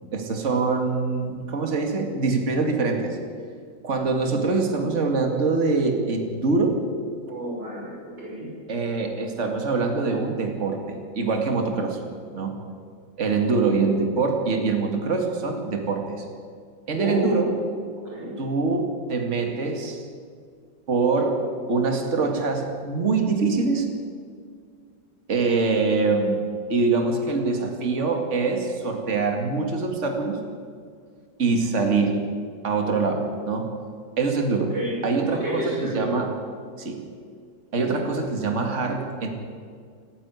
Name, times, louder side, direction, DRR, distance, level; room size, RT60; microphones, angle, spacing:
voice 1, 0.1-3.2 3.8-6.8 8.7-12.0 12.3-12.6 13.2-16.2 16.9-17.5 18.4-20.0 20.9-21.4 21.7-23.9 25.3-26.4 26.7-30.4 31.4-32.2 32.6-33.7 34.2-34.7 35.0-36.3 36.8-37.0 37.7-39.3, right 4 dB, 40° right, 4 dB, 2.4 m, -24 dB
voice 2, 7.3-8.5 16.9-17.5 18.0-18.3 34.7-35.0 35.3-36.1, right 1 dB, 80° right, -6 dB, 6.6 m, -30 dB
28.5 x 9.8 x 9.6 m, 2.1 s
omnidirectional pair, 1.9 m